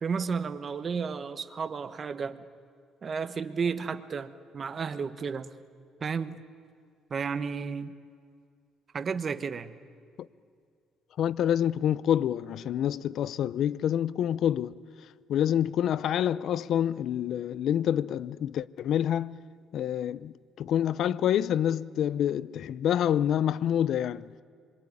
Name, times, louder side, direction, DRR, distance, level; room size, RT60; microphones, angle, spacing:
voice 1, 0.0-2.4 3.0-5.5 6.0-6.4 7.1-7.9 8.9-9.7, right 5 dB, 30° right, 1.1 m, -32 dB
voice 2, 11.2-14.7 15.3-19.4 19.7-24.3, left 10 dB, 55° left, 0.6 m, -27 dB
26.5 x 23.0 x 9.8 m
cardioid pair, 145°, 0 cm